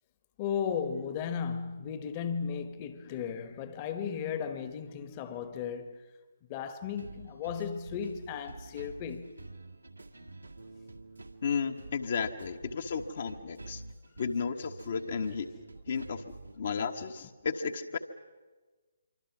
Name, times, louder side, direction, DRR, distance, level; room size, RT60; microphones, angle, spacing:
voice 1, 0.4-6.0 6.5-9.3, left 7 dB, 25° left, 1.3 m, -35 dB
sound 1, 7.0-16.6, right 2 dB, 75° right, 2.0 m, -48 dB
voice 2, 11.4-13.8 14.2-15.5 15.9-18.0, left 5 dB, 45° left, 1.2 m, -33 dB
26.5 x 24.5 x 6.1 m
figure-of-eight pair, 140°, 0 cm